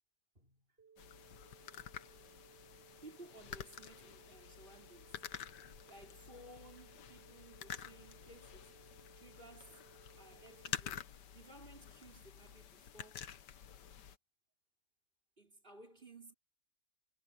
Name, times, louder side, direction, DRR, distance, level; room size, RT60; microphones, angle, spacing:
voice 1, 0.3-0.7 3.0-5.5 5.8-8.7 9.2-9.8 10.2-11.1 11.3-13.3 15.4-16.3, right 2 dB, 30° right, 4.8 m, -58 dB
sound 1, 0.8-10.8, right 6 dB, 10° right, 1.3 m, -64 dB
sound 2, 1.0-14.2, left 9 dB, 80° left, 1.7 m, -49 dB
omnidirectional pair, 1.8 m